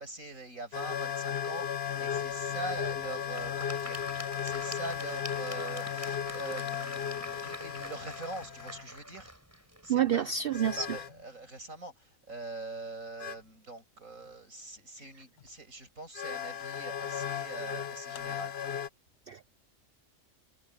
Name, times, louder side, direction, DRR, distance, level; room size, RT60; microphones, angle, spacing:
voice 1, 0.0-9.3 9.6-18.5, right 2 dB, 85° right, 8.5 m, -43 dB
sound 1, 0.7-8.9 10.5-11.2 13.2-13.4 15.4-15.5 16.1-18.9, left 8 dB, 55° left, 0.9 m, -36 dB
Applause / Crowd, 2.1-11.2, equal, 10° right, 6.2 m, -47 dB
voice 2, 9.9-10.9 19.3-19.5, right 9 dB, 55° right, 0.7 m, -28 dB
omnidirectional pair, 1.4 m